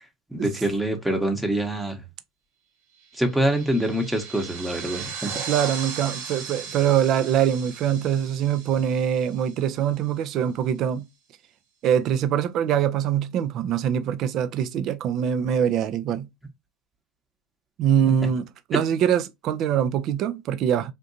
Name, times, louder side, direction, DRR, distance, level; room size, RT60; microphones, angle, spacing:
voice 1, 0.3-2.0 3.1-5.3 18.1-18.2 18.7-18.8, right 1 dB, 5° right, 0.9 m, -25 dB
sound 1, 3.1-10.0, right 6 dB, 70° right, 1.0 m, -37 dB
voice 2, 5.4-11.0 11.8-16.3 17.8-20.9, right 9 dB, 50° right, 0.4 m, -23 dB
3.6 x 2.5 x 2.6 m
hypercardioid pair, 85°, 0 cm